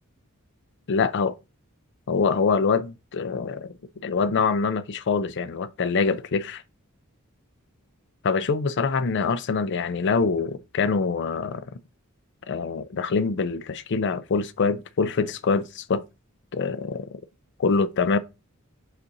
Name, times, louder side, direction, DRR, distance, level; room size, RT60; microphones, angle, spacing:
voice 1, 0.9-1.3 2.1-3.7 4.0-6.6 8.2-11.7 12.5-16.0 16.5-17.2 17.6-18.2, left 4 dB, 55° left, 0.5 m, -24 dB
5.3 x 4.2 x 5.2 m
head